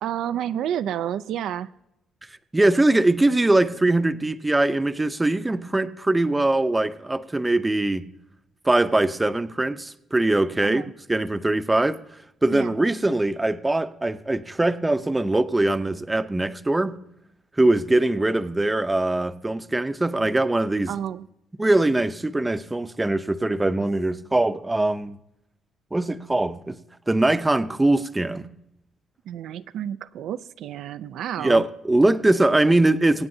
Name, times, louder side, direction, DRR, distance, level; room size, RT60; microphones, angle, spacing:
voice 1, 0.0-1.7 10.6-10.9 12.5-12.7 20.9-21.3 29.3-31.6, right 10 dB, 80° right, 0.3 m, -30 dB
voice 2, 2.5-8.1 8.6-12.0 12.4-17.0 17.6-20.9 21.6-25.2 25.9-26.8 27.1-28.5 31.4-33.3, right 2 dB, 15° right, 0.6 m, -22 dB
24.0 x 8.6 x 2.7 m
cardioid pair, 90°, 0 cm